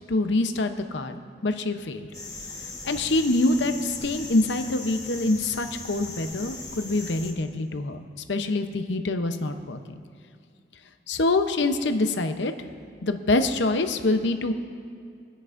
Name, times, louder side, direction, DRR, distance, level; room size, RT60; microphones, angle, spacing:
voice 1, 0.1-1.2 1.4-2.1 2.8-8.0 8.3-10.0 11.1-12.5 13.0-14.5, left 2 dB, 75° left, 7 dB, 0.8 m, -25 dB
sound 1, 2.1-7.3, left 3 dB, 20° left, 1.3 m, -39 dB
24.0 x 9.9 x 2.6 m, 2.4 s
head